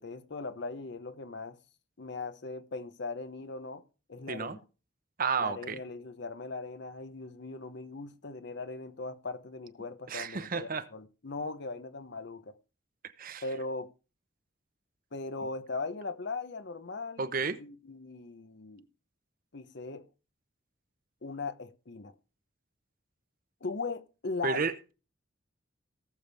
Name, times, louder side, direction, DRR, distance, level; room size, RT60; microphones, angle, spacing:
voice 1, 0.0-1.6 2.0-3.8 4.1-4.6 5.4-12.5 13.4-13.9 15.1-18.8 19.5-20.1 21.2-22.1 23.6-24.6, left 3 dB, 60° left, 0.9 m, -39 dB
voice 2, 5.2-5.8 10.1-10.9 13.2-13.4 17.2-17.6 24.4-24.9, right 5 dB, 45° right, 0.8 m, -32 dB
18.0 x 7.1 x 3.4 m
head